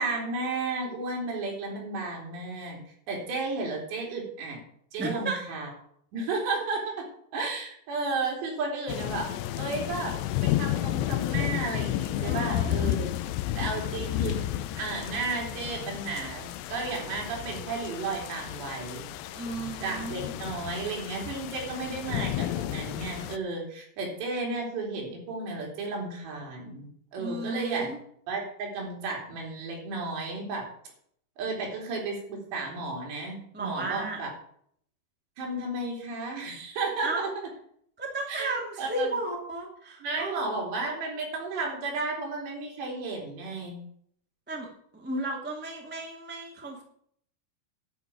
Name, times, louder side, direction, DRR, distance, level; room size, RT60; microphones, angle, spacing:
voice 1, 0.0-2.8 3.1-4.6 4.9-5.7 6.1-7.1 7.3-9.3 9.6-10.1 10.4-13.2 13.6-19.1 19.8-27.9 28.3-30.7 31.4-34.3 35.4-37.3 38.3-38.5 38.8-39.2 40.0-43.8, right 3 dB, 70° right, -1 dB, 5.3 m, -33 dB
voice 2, 5.0-5.4 12.2-12.7 19.3-20.4 27.2-28.0 33.5-34.2 37.0-37.3 38.0-40.5 44.5-44.7 44.9-46.8, right 2 dB, 5° right, 0 dB, 0.8 m, -34 dB
sound 1, 8.9-23.4, left 13 dB, 80° left, 2.7 m, -32 dB
11.0 x 6.0 x 8.6 m, 0.65 s
omnidirectional pair, 5.1 m